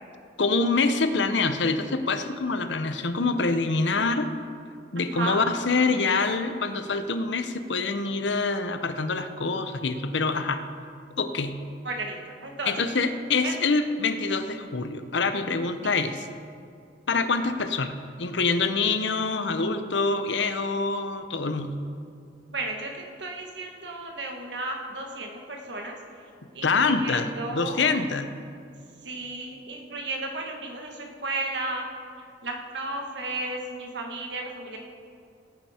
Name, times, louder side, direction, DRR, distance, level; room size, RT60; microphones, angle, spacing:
voice 1, 0.4-4.3 4.9-10.6 11.2-11.6 12.7-16.3 17.1-21.7 26.6-28.3, left 4 dB, 70° left, 9 dB, 0.8 m, -25 dB
voice 2, 4.9-5.4 11.8-12.7 13.4-13.5 22.5-25.9 26.5-27.8 29.0-31.9 32.4-34.8, right 2 dB, 65° right, 2 dB, 1.7 m, -34 dB
17.0 x 9.0 x 4.4 m, 2.4 s
head